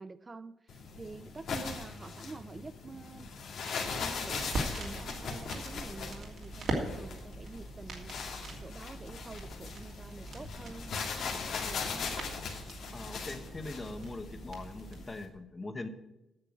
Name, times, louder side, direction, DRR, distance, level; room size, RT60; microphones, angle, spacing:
voice 1, 0.0-3.3 3.7-8.3 8.6-12.2, right 3 dB, 25° right, 13 dB, 0.4 m, -47 dB
sound 1, 0.7-15.2, left 5 dB, 70° left, 2.2 m, -40 dB
sound 2, 3.8-15.1, right 2 dB, 60° right, 3.0 m, -42 dB
voice 2, 12.9-15.9, left 2 dB, 25° left, 9 dB, 1.1 m, -42 dB
9.6 x 6.7 x 8.4 m, 0.95 s
cardioid pair, 90°, 0 cm